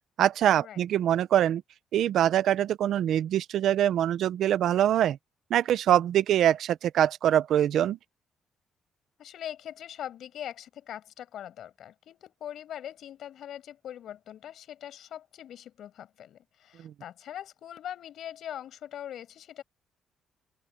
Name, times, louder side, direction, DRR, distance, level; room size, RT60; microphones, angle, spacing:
voice 1, 0.2-1.6 1.9-5.2 5.5-8.0 16.8-16.9, right 11 dB, 75° right, 0.8 m, -24 dB
voice 2, 9.2-19.6, left 10 dB, 70° left, 7.4 m, -42 dB
open air
cardioid pair, 90°, 0 cm